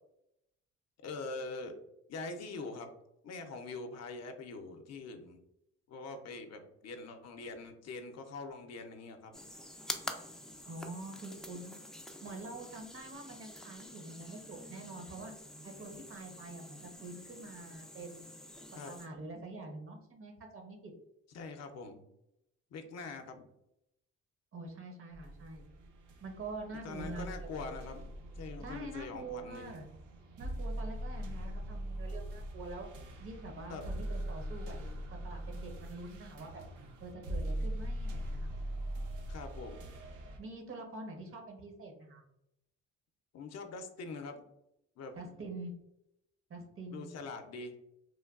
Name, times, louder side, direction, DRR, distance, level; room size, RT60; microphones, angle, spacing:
voice 1, 1.0-1.7 2.1-2.9 3.2-5.4 5.9-9.3 18.7-18.9 21.3-22.0 22.7-23.5 26.8-28.0 28.4-29.8 33.7-33.8 39.3-39.9 43.3-44.4 45.0-45.2 46.9-47.8, left 3 dB, 60° left, 5 dB, 0.5 m, -43 dB
sound 1, 9.3-19.1, left 1 dB, ahead, 0.3 m, -47 dB
voice 2, 10.6-11.8 12.2-15.3 15.6-18.3 18.9-20.9 24.5-25.6 26.2-27.3 27.6-27.8 28.6-29.9 30.4-32.9 33.2-34.9 35.2-36.6 37.0-38.5 40.4-42.2 45.2-45.8 46.5-47.1, right 2 dB, 45° right, 3 dB, 0.7 m, -45 dB
sound 2, 25.1-40.4, right 1 dB, 90° right, 0.6 m, -41 dB
3.1 x 2.2 x 2.3 m, 0.82 s
cardioid pair, 90°, 30 cm